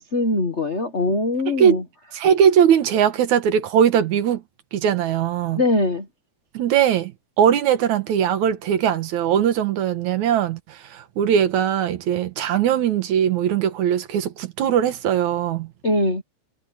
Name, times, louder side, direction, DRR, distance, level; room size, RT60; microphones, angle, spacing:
voice 1, 0.0-1.8 5.6-6.1 15.8-16.2, left 2 dB, 55° left, 0.7 m, -22 dB
voice 2, 2.1-4.4 4.7-5.6 6.5-7.1 7.4-15.7, right 9 dB, 70° right, 2.5 m, -20 dB
omnidirectional pair, 3.7 m